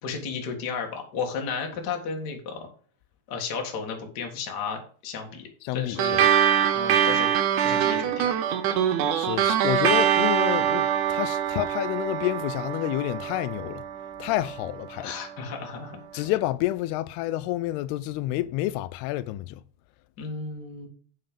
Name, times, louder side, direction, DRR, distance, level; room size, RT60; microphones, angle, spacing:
voice 1, 0.0-2.7 3.3-6.3 6.7-7.3 7.6-8.4 15.0-16.2 20.2-20.9, left 5 dB, 45° left, 1.3 m, -33 dB
voice 2, 5.6-6.3 9.1-13.8 14.2-15.1 16.1-19.6, left 15 dB, 90° left, 2.6 m, -29 dB
sound 1, 6.0-14.8, right 9 dB, 80° right, 1.8 m, -24 dB
7.8 x 6.5 x 5.2 m
omnidirectional pair, 4.5 m